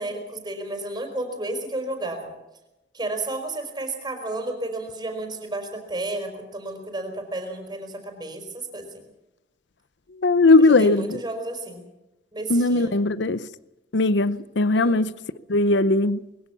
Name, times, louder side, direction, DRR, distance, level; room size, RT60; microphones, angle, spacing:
voice 1, 0.0-2.3 2.9-9.0 10.6-11.8 12.3-13.0 14.7-15.0, right 2 dB, 25° right, 4.9 m, -32 dB
voice 2, 10.2-11.2 12.5-13.4 13.9-15.1 15.5-16.2, left 2 dB, 80° left, 0.7 m, -19 dB
22.0 x 17.0 x 7.1 m
head